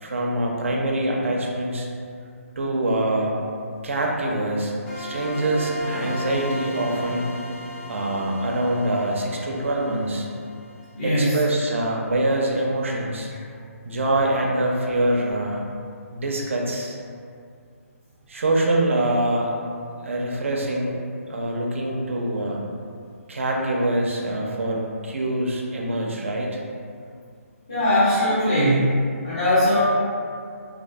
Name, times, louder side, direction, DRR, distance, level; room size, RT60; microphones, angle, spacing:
voice 1, 0.0-1.9 2.6-3.4 3.8-7.3 7.9-10.3 11.0-13.3 13.8-15.6 16.1-17.0 18.3-19.5 20.0-21.0 21.3-22.6 23.3-26.6, right 1 dB, 55° right, -1 dB, 0.4 m, -24 dB
sound 1, 4.9-11.5, equal, 45° left, 1.1 m, -36 dB
voice 2, 10.9-11.4 27.7-29.0 29.2-29.8, equal, 25° left, -15 dB, 0.7 m, -20 dB
2.5 x 2.4 x 2.2 m, 2.3 s
hypercardioid pair, 180°, 8 cm